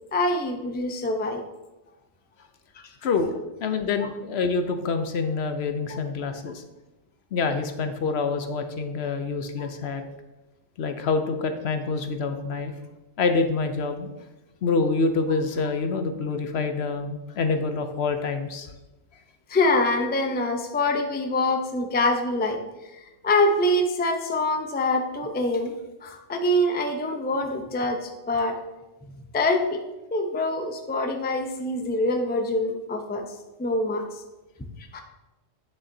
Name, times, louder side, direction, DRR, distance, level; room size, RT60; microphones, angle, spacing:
voice 1, 0.1-1.4 5.9-6.0 9.6-9.7 19.5-22.6 22.9-25.8 26.0-28.6 29.3-29.8 30.1-33.3 33.6-34.0 34.9-35.0, left 1 dB, 15° left, 4 dB, 0.4 m, -25 dB
voice 2, 3.6-6.6 7.3-10.0 10.8-12.7 13.2-14.1 14.6-18.7, left 4 dB, 65° left, 7 dB, 0.9 m, -26 dB
8.9 x 6.9 x 2.7 m, 1.0 s
omnidirectional pair, 1.3 m